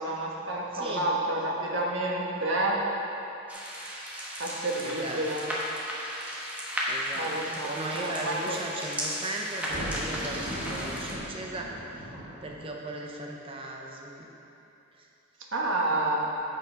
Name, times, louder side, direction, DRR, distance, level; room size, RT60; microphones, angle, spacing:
voice 1, 0.0-2.8 4.4-5.4 7.2-8.6 15.5-16.2, right 2 dB, 60° right, -3 dB, 1.3 m, -29 dB
voice 2, 0.7-1.1 4.8-5.2 6.9-12.1 12.4-14.3 14.9-15.1, right 2 dB, 25° right, 0 dB, 0.6 m, -37 dB
sound 1, 3.5-11.2, equal, 5° right, 1.1 m, -35 dB
Thunder, 9.6-12.9, equal, 75° right, 2.2 m, -38 dB
8.1 x 6.5 x 5.2 m, 2.9 s
head